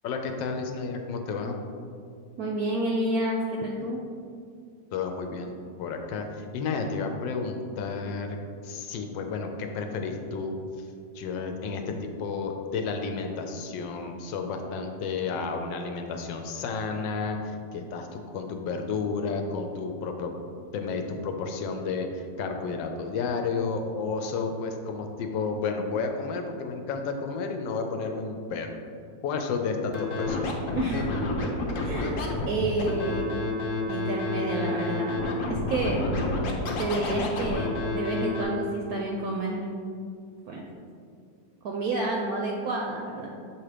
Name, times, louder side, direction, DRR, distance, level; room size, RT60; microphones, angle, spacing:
voice 1, 0.0-1.6 4.9-8.4 8.6-10.9 11.1-20.3 20.7-28.8 29.2-30.6, left 4 dB, 85° left, 5 dB, 1.3 m, -31 dB
voice 2, 2.4-4.0 30.7-31.1 31.8-32.2 32.5-33.4 33.9-35.2 35.5-36.1 36.8-39.6 40.5-40.6 41.6-43.3, right 2 dB, 70° right, -1 dB, 1.0 m, -29 dB
Scratching (performance technique), 29.9-38.4, left 2 dB, 60° left, 1.0 m, -29 dB
7.2 x 3.0 x 4.9 m, 2.3 s
omnidirectional pair, 1.9 m